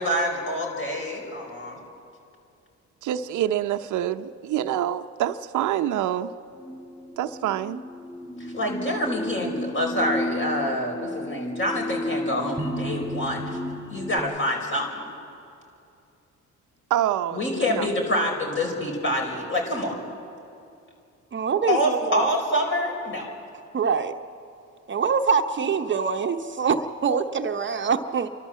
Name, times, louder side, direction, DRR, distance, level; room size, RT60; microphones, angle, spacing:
voice 1, 0.0-1.8 8.4-13.5 13.9-15.1 17.3-20.0 21.7-23.3, left 1 dB, 40° left, 1 dB, 5.1 m, -26 dB
voice 2, 3.0-6.3 7.2-7.8 16.9-17.4 17.7-17.9, right 11 dB, 75° right, 8 dB, 0.7 m, -26 dB
sound 1, 6.6-14.2, equal, 10° right, 1.6 m, -33 dB
voice 3, 21.3-22.3 23.7-24.1 24.9-28.3, right 6 dB, 40° right, 6 dB, 0.8 m, -24 dB
28.5 x 12.5 x 7.5 m, 2.6 s
cardioid pair, 90°, 30 cm